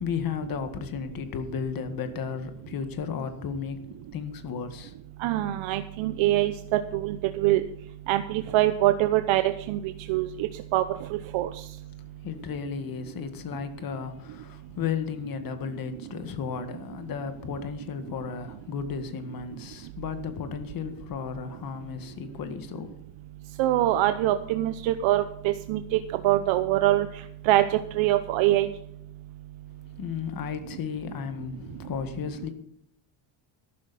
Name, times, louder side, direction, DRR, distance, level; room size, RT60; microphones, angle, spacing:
voice 1, 0.0-4.9 12.0-22.9 29.8-32.5, left 6 dB, 45° left, 1.8 m, -34 dB
voice 2, 5.2-6.5 6.9-7.6 8.1-9.4 9.7-9.8 10.1-10.8 11.3-11.5 23.6-27.1 27.4-28.7, right 14 dB, 70° right, 0.9 m, -24 dB
13.5 x 12.5 x 4.2 m
cardioid pair, 150°, 48 cm